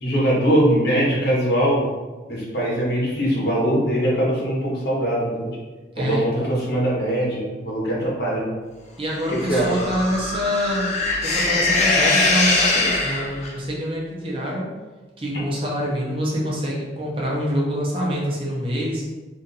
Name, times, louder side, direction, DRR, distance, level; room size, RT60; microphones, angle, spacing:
voice 1, 0.0-1.8 2.3-5.5 6.0-8.4 9.5-9.7, right 1 dB, 60° left, -5 dB, 1.1 m, -21 dB
voice 2, 5.9-6.5 9.0-10.9 11.2-14.7 15.2-19.0, equal, 30° right, -4 dB, 0.8 m, -25 dB
sound 1, 9.2-13.5, left 2 dB, 40° left, 0.6 m, -22 dB
2.7 x 2.5 x 3.9 m, 1.3 s
head